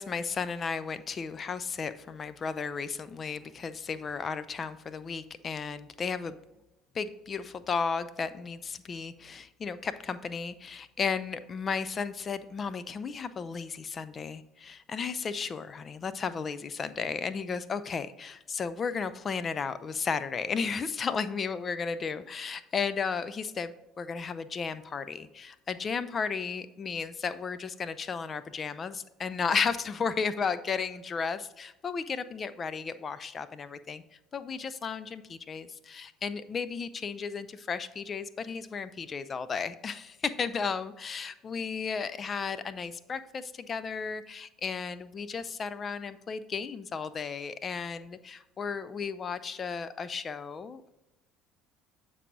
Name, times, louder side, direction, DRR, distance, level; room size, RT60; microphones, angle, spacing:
voice 1, 0.0-6.4 6.9-34.0 34.3-50.9, left 5 dB, 40° left, 14 dB, 0.5 m, -34 dB
7.4 x 4.7 x 4.0 m, 0.97 s
hypercardioid pair, 65°, 0 cm